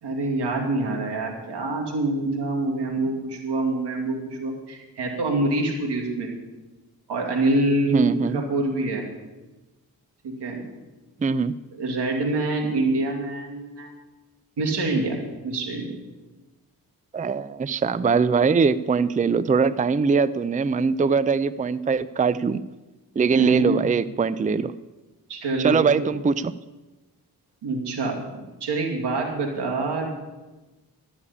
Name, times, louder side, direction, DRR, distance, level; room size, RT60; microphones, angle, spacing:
voice 1, 0.0-6.3 7.1-9.0 10.2-10.7 11.8-13.9 14.6-15.2 15.4-16.0 23.3-23.7 25.3-26.1 27.6-30.1, right 2 dB, 90° right, 0 dB, 2.5 m, -26 dB
voice 2, 7.9-8.4 11.2-11.5 17.1-22.6 23.2-24.7 25.6-26.5, right 5 dB, 20° right, 16 dB, 0.5 m, -22 dB
13.0 x 7.0 x 8.5 m, 1.1 s
cardioid pair, 50°, 40 cm